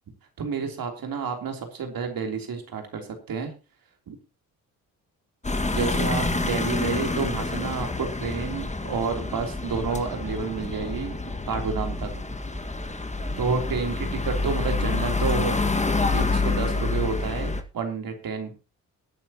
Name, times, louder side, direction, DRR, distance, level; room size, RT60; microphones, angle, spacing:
voice 1, 0.4-3.5 4.1-4.2 5.7-12.2 13.4-18.5, right 5 dB, 60° right, 4 dB, 3.3 m, -30 dB
sound 1, 5.4-17.6, left 3 dB, 20° left, 1.7 m, -27 dB
21.5 x 9.2 x 2.9 m, 0.30 s
hypercardioid pair, 50°, 39 cm